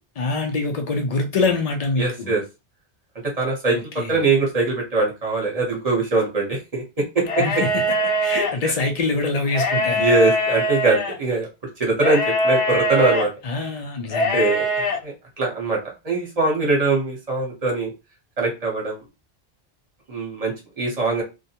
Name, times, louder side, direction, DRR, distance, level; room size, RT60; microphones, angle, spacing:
voice 1, 0.2-2.3 3.7-4.2 7.4-7.8 8.2-10.2 13.4-14.4, left 3 dB, 55° left, 0.4 m, -25 dB
voice 2, 2.0-2.4 3.4-3.8 4.1-6.8 7.1-7.2 10.0-11.5 11.8-13.3 14.3-14.6 15.0-15.8 16.0-17.9 18.4-19.0 20.1-21.2, right 3 dB, 35° right, 0.9 m, -22 dB
sound 1, 7.2-8.5 9.5-11.1 12.0-13.3 14.1-15.0, equal, 70° left, 1.0 m, -22 dB
2.3 x 2.1 x 2.7 m
omnidirectional pair, 1.1 m